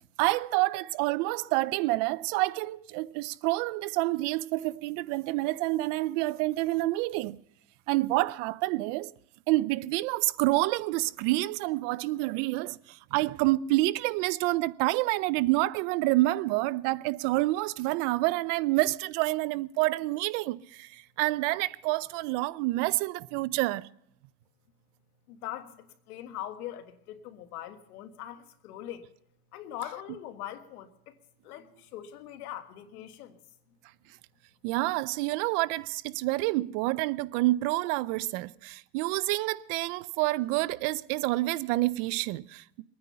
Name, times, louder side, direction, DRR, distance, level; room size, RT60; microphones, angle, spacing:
voice 1, 0.2-7.4 7.9-9.1 9.5-23.9 34.6-42.8, right 19 dB, 55° right, 0.6 m, -28 dB
voice 2, 25.3-29.1 29.5-31.2 31.4-33.4, left 12 dB, 80° left, 1.8 m, -41 dB
22.0 x 9.6 x 5.6 m
supercardioid pair, 130°, 44 cm